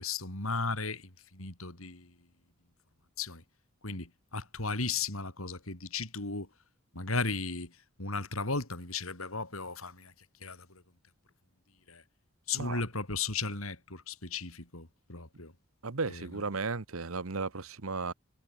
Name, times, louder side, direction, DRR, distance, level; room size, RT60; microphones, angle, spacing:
voice 1, 0.0-2.1 3.2-3.4 3.8-6.5 6.9-7.7 8.0-10.1 10.4-10.8 11.9-12.0 12.5-15.5 16.1-16.4, left 4 dB, 90° left, 6.0 m, -35 dB
voice 2, 15.8-18.1, right 4 dB, 85° right, 1.2 m, -35 dB
head